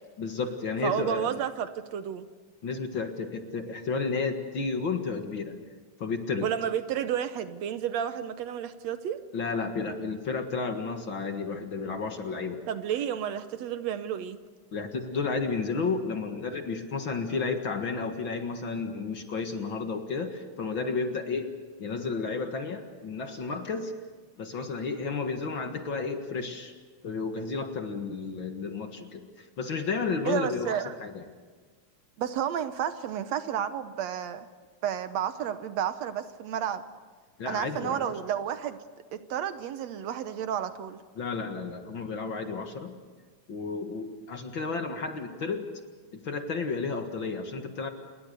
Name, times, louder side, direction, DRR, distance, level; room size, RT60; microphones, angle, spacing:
voice 1, 0.2-1.4 2.6-5.6 6.0-6.5 9.3-12.6 14.7-21.5 21.8-23.9 24.4-26.7 27.0-31.2 37.4-38.1 41.2-43.0 43.5-45.7 46.1-47.9, left 4 dB, 45° left, 6 dB, 2.1 m, -32 dB
voice 2, 0.8-2.3 6.4-9.2 12.7-14.4 30.3-30.9 32.2-34.5 34.8-36.8 37.5-38.8 39.1-41.0, right 9 dB, 70° right, 11 dB, 2.0 m, -31 dB
28.0 x 22.0 x 6.8 m, 1.5 s
omnidirectional pair, 3.3 m